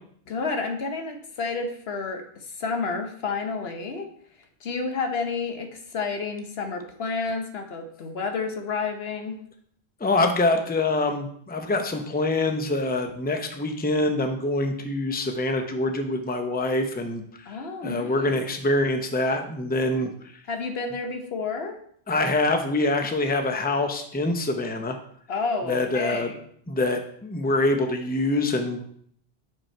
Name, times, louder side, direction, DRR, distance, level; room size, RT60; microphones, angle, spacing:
voice 1, 0.3-4.1 4.6-9.4 17.5-18.5 20.5-21.8 25.3-26.4, left 4 dB, 80° left, 5 dB, 1.1 m, -30 dB
voice 2, 10.0-17.2 17.8-20.1 22.1-25.0 25.7-26.3 26.7-28.8, left 2 dB, 10° left, 5 dB, 0.6 m, -25 dB
6.0 x 5.4 x 4.4 m, 0.64 s
omnidirectional pair, 1.0 m